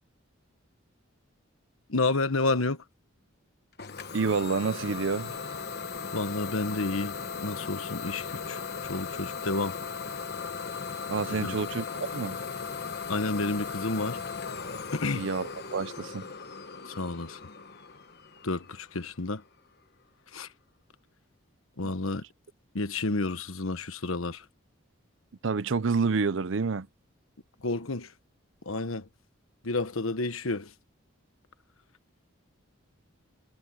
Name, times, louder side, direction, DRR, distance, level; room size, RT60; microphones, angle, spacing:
voice 1, 1.9-2.8 6.1-9.8 11.4-11.6 13.1-14.2 14.9-15.3 16.9-17.4 18.4-19.4 20.3-20.5 21.8-22.2 22.7-24.4 27.6-28.1 28.6-29.1 29.6-30.7, left 3 dB, 85° left, 1.3 m, -30 dB
Idling / Domestic sounds home sounds, 3.8-19.3, left 5 dB, 50° left, 1.2 m, -37 dB
voice 2, 4.1-5.3 11.1-11.8 12.1-12.4 15.1-16.3 25.4-26.9, right 4 dB, 65° right, 0.6 m, -28 dB
head